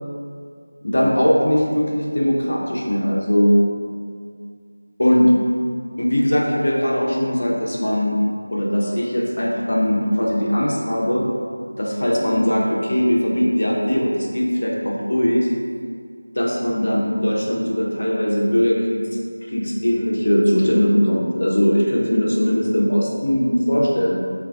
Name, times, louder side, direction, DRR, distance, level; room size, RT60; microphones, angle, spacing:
voice 1, 0.8-3.6 5.0-5.3 6.0-8.2 8.5-11.2 11.8-15.5 16.4-19.1 19.5-24.2, equal, 55° left, -3 dB, 0.5 m, -20 dB
3.2 x 2.3 x 2.3 m, 2.2 s
figure-of-eight pair, 170°, 0 cm